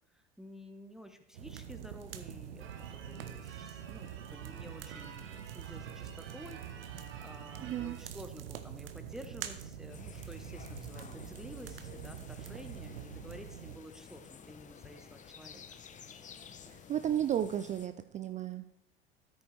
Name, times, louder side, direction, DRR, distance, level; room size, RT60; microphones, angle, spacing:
voice 1, 0.1-15.6 16.9-17.2, equal, ahead, 6 dB, 1.3 m, -51 dB
sound 1, 1.3-13.8, right 9 dB, 70° right, 0.9 m, -45 dB
Church bell / Car / Alarm, 2.6-8.2, right 8 dB, 45° right, 1.3 m, -52 dB
voice 2, 7.6-8.0 16.7-18.7, right 10 dB, 25° right, 11 dB, 0.4 m, -33 dB
sound 2, 9.9-17.9, left 7 dB, 25° left, 0.9 m, -52 dB
13.0 x 8.9 x 3.4 m, 0.80 s
figure-of-eight pair, 70°, 29 cm